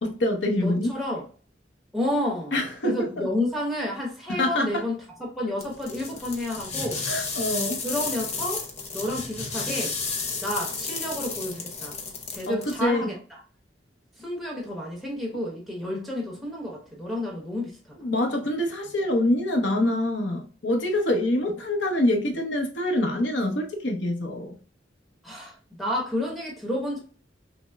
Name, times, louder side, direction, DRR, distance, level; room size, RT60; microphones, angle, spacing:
voice 1, 0.0-0.9 2.5-3.3 4.3-4.7 7.1-7.8 12.5-13.1 18.0-24.6, left 1 dB, 85° left, 0.9 m, -25 dB
voice 2, 0.6-1.2 1.9-2.6 2.8-7.0 7.8-8.6 8.9-10.0 10.4-12.0 12.3-13.4 14.2-18.1 25.2-27.0, left 1 dB, ahead, 1.0 m, -30 dB
sound 1, 5.6-12.8, left 4 dB, 40° left, 0.7 m, -32 dB
5.9 x 2.1 x 2.3 m
head